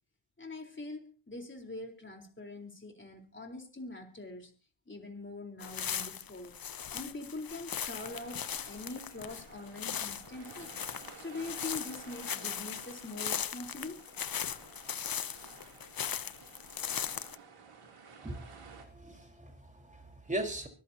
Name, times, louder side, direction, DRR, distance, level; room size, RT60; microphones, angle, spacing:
voice 1, 0.4-4.5 4.9-6.5 6.9-10.7 11.2-14.0, left 2 dB, 20° left, 3 dB, 4.1 m, -43 dB
sound 1, 5.6-17.4, left 8 dB, 45° left, 0.7 m, -39 dB
sound 2, 7.9-18.8, right 5 dB, 90° right, 3.2 m, -54 dB
voice 2, 18.2-20.7, right 1 dB, 15° right, 3 dB, 4.4 m, -39 dB
24.5 x 14.0 x 2.8 m, 0.36 s
wide cardioid pair, 85°, 50 cm